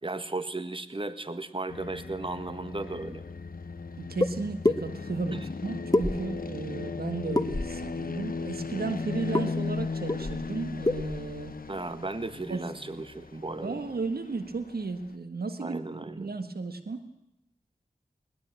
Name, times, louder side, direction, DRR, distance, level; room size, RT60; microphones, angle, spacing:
voice 1, 0.0-3.2 5.3-5.5 11.7-13.8 15.6-16.3, right 2 dB, 35° right, 11 dB, 1.6 m, -35 dB
sound 1, 1.7-15.1, left 4 dB, 70° left, 1.0 m, -37 dB
voice 2, 4.0-11.5 12.5-12.6 13.6-15.8 16.2-17.0, right 3 dB, 85° right, 9 dB, 1.6 m, -34 dB
sound 2, 4.2-4.3 4.6-4.8 5.9-6.5 7.3-7.8 9.3-9.5 9.8-9.9 10.1-10.5 10.8-11.2, left 2 dB, 25° left, 1.3 m, -26 dB
20.5 x 20.5 x 8.9 m, 0.83 s
cardioid pair, 40°, 16 cm